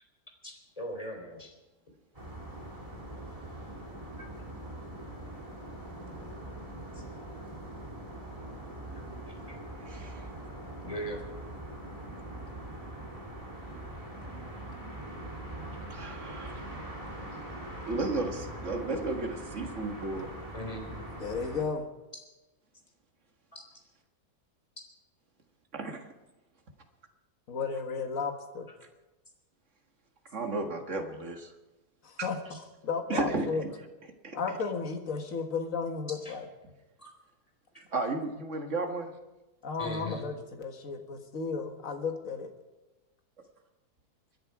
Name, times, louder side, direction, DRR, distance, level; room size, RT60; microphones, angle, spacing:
voice 1, 0.4-1.6 4.2-4.3 6.9-7.0 9.0-9.6 10.8-11.3 20.5-20.9 23.5-23.6 32.5-32.6 36.2-36.3 37.0-37.1 37.7-37.8 39.8-40.3, equal, 20° left, 2 dB, 3.7 m, -40 dB
sound 1, 2.1-21.6, right 1 dB, 20° right, 3.0 m, -42 dB
voice 2, 9.8-10.3 15.9-16.7 17.9-20.3 25.7-26.1 30.3-31.5 32.2-32.3 33.1-33.7 34.2-34.4 37.9-39.1, right 3 dB, 50° right, 4 dB, 2.1 m, -34 dB
voice 3, 21.2-21.8 27.5-28.7 32.0-32.4 32.8-33.6 34.3-36.4 39.6-42.5, left 5 dB, 55° left, 4 dB, 2.0 m, -33 dB
26.5 x 10.5 x 4.8 m, 1.1 s
omnidirectional pair, 1.7 m